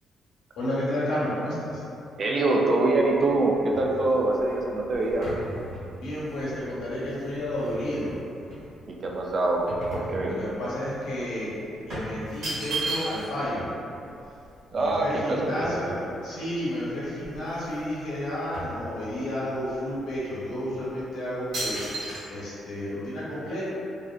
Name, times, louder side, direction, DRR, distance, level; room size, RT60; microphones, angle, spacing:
voice 1, 0.6-1.8 6.0-8.2 10.3-13.7 14.7-23.6, left 1 dB, 80° left, -9 dB, 0.8 m, -31 dB
voice 2, 2.2-5.3 8.9-10.3 14.7-15.8, right 2 dB, 50° right, -1 dB, 0.3 m, -24 dB
sound 1, 3.4-8.1 8.5-10.7 11.0-11.2 11.9-13.5 13.8-13.9 14.1-16.2 16.8-16.9 17.1-17.9 18.2-19.4 20.0-20.1 20.8-21.0 21.5-22.2, right 2 dB, 70° right, 1.0 m, -36 dB
2.4 x 2.2 x 2.3 m, 2.7 s
cardioid pair, 90°, 0 cm